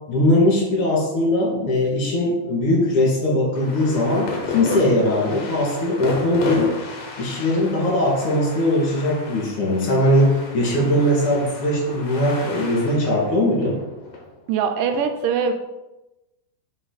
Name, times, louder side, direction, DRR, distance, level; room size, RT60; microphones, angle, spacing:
voice 1, 0.1-6.7 7.2-13.8, left 1 dB, 45° left, -3 dB, 2.8 m, -20 dB
sound 1, 3.5-15.0, left 3 dB, 60° left, 1.8 m, -33 dB
voice 2, 14.5-15.5, right 6 dB, 80° right, 6 dB, 2.0 m, -22 dB
7.8 x 5.2 x 4.1 m, 1.0 s
omnidirectional pair, 4.2 m